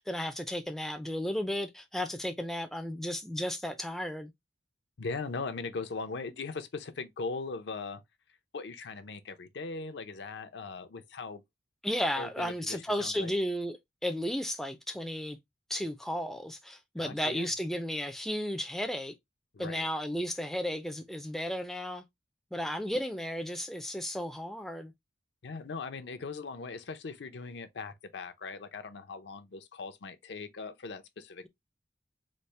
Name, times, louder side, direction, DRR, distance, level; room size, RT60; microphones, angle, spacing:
voice 1, 0.0-4.3 11.8-15.4 15.7-19.1 19.6-22.0 22.5-24.9, equal, ahead, 0.3 m, -34 dB
voice 2, 5.0-8.0 8.5-11.4 12.2-13.3 17.0-17.5 19.5-19.9 25.4-31.5, left 4 dB, 75° left, 0.5 m, -39 dB
4.1 x 2.0 x 3.1 m
head